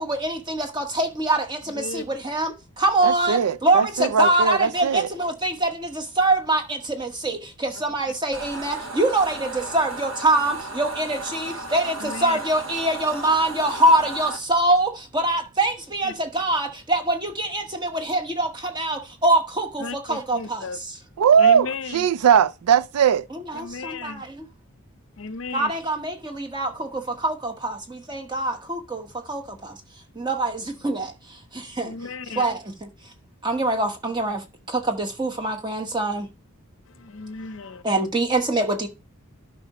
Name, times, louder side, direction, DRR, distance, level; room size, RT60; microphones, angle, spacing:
voice 1, 0.0-20.9 23.3-24.5 25.5-29.8 30.1-32.9 33.4-36.3 37.8-38.9, right 2 dB, 20° right, 1.0 m, -24 dB
voice 2, 3.0-5.1 21.2-23.3, right 7 dB, 90° right, 0.4 m, -19 dB
sound 1, 8.3-14.4, right 2 dB, 65° right, 1.4 m, -35 dB
voice 3, 12.0-12.4 16.0-16.1 19.8-20.8 21.4-22.1 23.5-24.2 25.2-25.7 31.8-32.5 36.9-37.8, left 4 dB, 60° left, 0.6 m, -34 dB
12.0 x 5.4 x 2.9 m
head